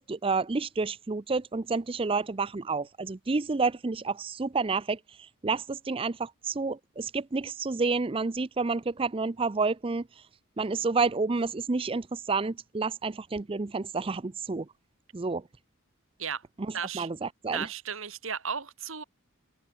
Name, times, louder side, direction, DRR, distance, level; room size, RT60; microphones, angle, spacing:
voice 1, 0.0-10.3 10.6-14.6 15.1-15.4 16.7-17.7, right 4 dB, 25° right, 0.4 m, -30 dB
voice 2, 16.7-17.1 17.5-19.0, right 7 dB, 65° right, 1.9 m, -34 dB
head